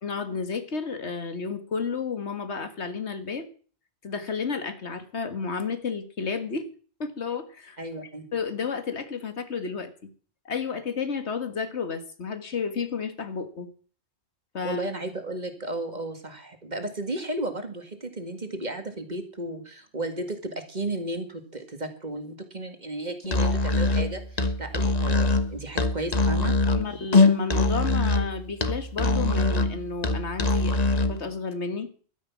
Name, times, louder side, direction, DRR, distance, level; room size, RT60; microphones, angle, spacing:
voice 1, 0.0-3.5 4.0-6.7 7.0-7.8 8.3-10.1 10.5-13.7 14.5-14.8 26.8-30.8 31.1-31.9, left 5 dB, 85° left, 10 dB, 2.0 m, -31 dB
voice 2, 7.8-8.3 14.6-26.5, right 1 dB, 40° right, 7 dB, 2.2 m, -34 dB
Musical instrument, 23.2-31.2, left 2 dB, 40° left, 1.3 m, -23 dB
12.5 x 10.0 x 7.2 m, 0.42 s
omnidirectional pair, 1.1 m